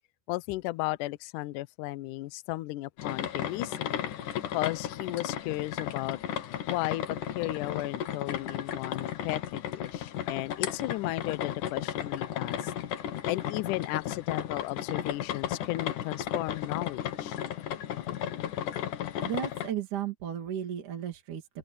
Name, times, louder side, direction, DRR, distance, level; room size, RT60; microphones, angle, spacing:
voice 1, 0.3-4.1 4.5-6.2 6.7-12.7 13.3-17.4, left 19 dB, 90° left, 1.8 m, -35 dB
sound 1, 3.0-19.7, left 10 dB, 65° left, 2.6 m, -34 dB
voice 2, 19.2-21.5, right 9 dB, 55° right, 4.2 m, -34 dB
open air
omnidirectional pair, 4.5 m